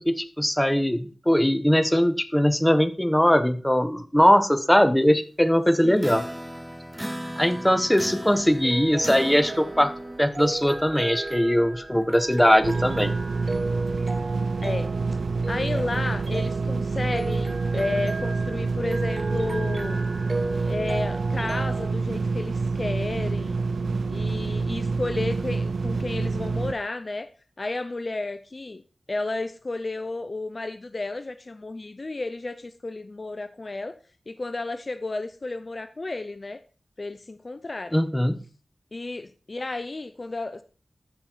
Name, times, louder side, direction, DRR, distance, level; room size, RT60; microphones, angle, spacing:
voice 1, 0.0-6.2 7.4-9.9 10.2-13.1 37.9-38.4, equal, 10° left, 10 dB, 1.4 m, -21 dB
voice 2, 5.8-6.2 8.1-8.4 14.6-14.9 15.5-20.0 20.7-23.6 24.1-27.3 27.6-28.8 29.1-33.9 34.3-36.6 37.0-38.0 38.9-40.6, left 2 dB, 50° left, 11 dB, 0.7 m, -32 dB
sound 1, 6.0-10.2, equal, 10° right, 0.8 m, -36 dB
sound 2, 8.4-21.9, right 2 dB, 50° right, 1.3 m, -34 dB
sound 3, 12.6-26.7, right 4 dB, 85° right, 0.4 m, -27 dB
13.5 x 5.7 x 4.7 m, 0.37 s
cardioid pair, 40°, 0 cm